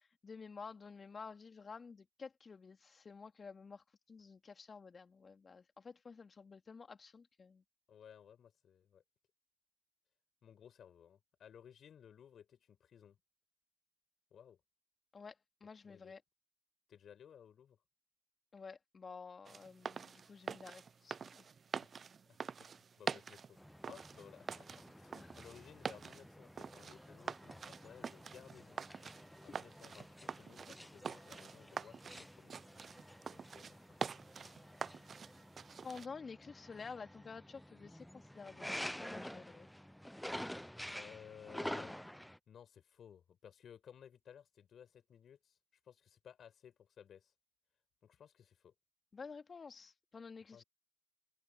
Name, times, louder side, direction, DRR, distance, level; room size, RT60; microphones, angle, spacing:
voice 1, 0.0-7.6 15.1-16.2 18.5-21.5 25.1-25.4 35.8-39.7 49.1-50.6, left 5 dB, 35° left, 2.9 m, -51 dB
voice 2, 7.9-9.0 10.4-13.2 14.3-14.6 15.8-16.1 16.9-17.8 21.8-22.0 22.3-22.7 23.0-23.6 23.9-28.9 29.4-32.6 33.3-34.1 40.9-42.0 42.5-45.6 45.8-47.3 48.0-48.7 50.5-50.6, left 8 dB, 50° left, 5.7 m, -58 dB
sound 1, 19.5-36.1, right 6 dB, 40° right, 0.4 m, -46 dB
sound 2, 23.6-42.4, equal, 5° left, 0.8 m, -49 dB
hypercardioid pair, 60°, 0 cm